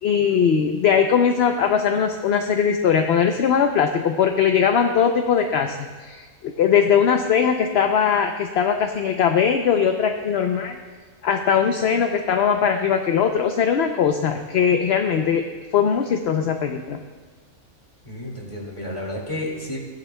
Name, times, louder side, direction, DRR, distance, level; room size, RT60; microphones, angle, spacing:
voice 1, 0.0-10.8 11.2-15.5 15.7-17.0, left 7 dB, 60° left, 5 dB, 0.7 m, -20 dB
voice 2, 18.1-19.8, left 1 dB, 20° left, -2 dB, 2.1 m, -31 dB
16.0 x 10.5 x 2.2 m, 1.4 s
omnidirectional pair, 1.4 m